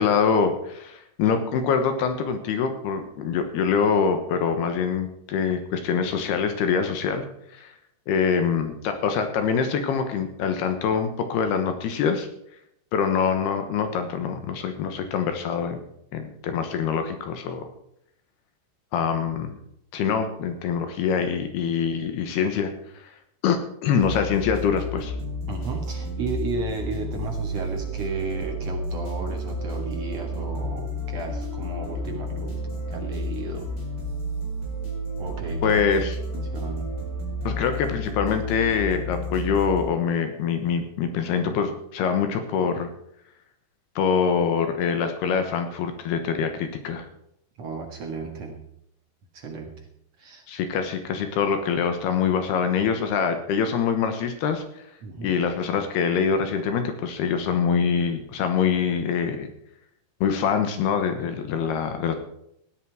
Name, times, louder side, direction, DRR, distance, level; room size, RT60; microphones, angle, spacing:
voice 1, 0.0-7.3 7.5-7.7 8.1-12.3 12.9-15.8 16.1-17.7 18.9-19.6 19.9-23.1 23.4-25.1 35.6-36.2 37.4-42.9 44.0-47.1 50.5-54.8 55.2-59.5 60.2-62.1, left 6 dB, 75° left, 7 dB, 3.1 m, -24 dB
sound 1, 24.0-39.8, equal, 25° left, 4.8 m, -31 dB
voice 2, 25.5-33.7 35.2-35.7 36.3-37.0 47.6-48.6 49.3-49.9 50.2-50.4 55.0-55.3, right 4 dB, 55° right, 2 dB, 2.0 m, -34 dB
17.0 x 11.0 x 4.7 m, 0.75 s
omnidirectional pair, 4.9 m